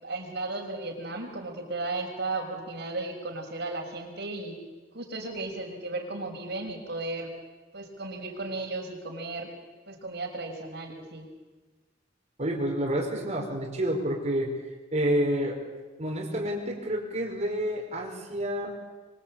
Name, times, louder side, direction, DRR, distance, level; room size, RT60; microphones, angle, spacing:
voice 1, 0.0-4.6 4.9-7.3 7.7-9.5 9.9-11.3, right 2 dB, 65° right, 2 dB, 5.7 m, -35 dB
voice 2, 12.4-15.6 16.0-18.7, right 1 dB, 40° right, -1 dB, 4.6 m, -29 dB
25.5 x 23.5 x 8.8 m, 1.3 s
head